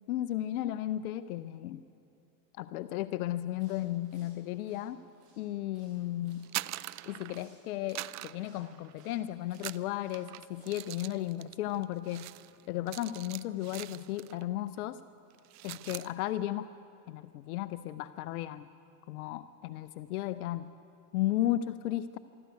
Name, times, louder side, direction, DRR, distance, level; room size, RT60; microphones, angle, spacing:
voice 1, 0.1-1.8 2.5-5.0 5.4-6.5 7.1-12.3 12.7-15.0 15.6-16.7 17.1-18.7 19.1-20.7 21.1-22.2, left 13 dB, 80° left, 14 dB, 0.7 m, -34 dB
sound 1, 3.6-10.9, right 3 dB, 75° right, 6.7 m, -65 dB
sound 2, 6.3-7.6 7.9-9.1 9.5-14.5 14.7-15.0 15.3-16.1, right 18 dB, 40° right, 0.5 m, -43 dB
24.0 x 13.0 x 9.4 m, 2.7 s
hypercardioid pair, 90°, 43 cm